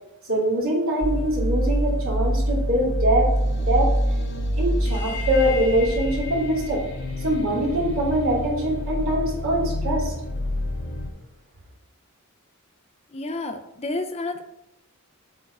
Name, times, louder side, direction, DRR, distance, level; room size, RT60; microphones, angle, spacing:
voice 1, 0.3-3.3 3.7-3.9 4.6-6.8 7.2-10.1, right 1 dB, 60° right, -5 dB, 2.8 m, -23 dB
sound 1, 1.0-11.1, equal, 50° left, 1.0 m, -26 dB
voice 2, 13.1-14.4, left 2 dB, 30° left, 7 dB, 0.6 m, -30 dB
8.0 x 4.0 x 4.6 m, 0.84 s
head